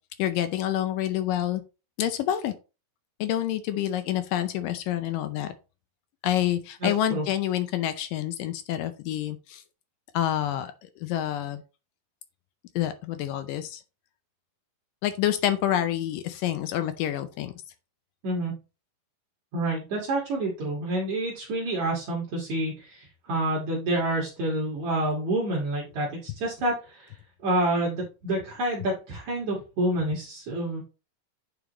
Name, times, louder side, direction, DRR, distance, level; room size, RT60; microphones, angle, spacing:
voice 1, 0.2-1.6 2.0-2.5 3.2-5.5 6.2-9.6 10.1-10.7 11.0-11.6 12.8-13.8 15.0-17.5, left 11 dB, 80° left, 10 dB, 2.1 m, -27 dB
voice 2, 6.8-7.2 18.2-18.5 19.5-27.1 27.4-30.8, right 1 dB, 60° right, -3 dB, 2.9 m, -28 dB
9.8 x 5.1 x 3.0 m, 0.31 s
omnidirectional pair, 4.1 m